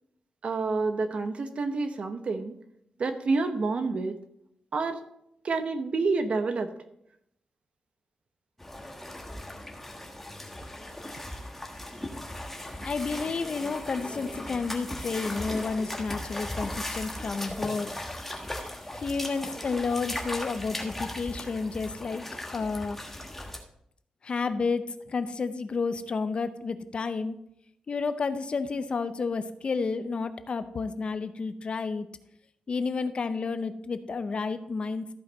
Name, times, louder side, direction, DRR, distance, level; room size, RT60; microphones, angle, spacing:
voice 1, 0.4-2.6 3.0-4.1 4.7-5.0 5.4-6.7, right 3 dB, 55° right, 8 dB, 0.9 m, -28 dB
sound 1, 8.6-23.6, left 1 dB, 10° left, 1.4 m, -38 dB
voice 2, 12.9-17.9 18.9-22.2 22.5-23.0 24.2-27.4 27.9-32.1 32.7-35.1, left 4 dB, 45° left, 11 dB, 0.6 m, -31 dB
13.5 x 5.1 x 4.0 m, 0.76 s
wide cardioid pair, 110°, 2 cm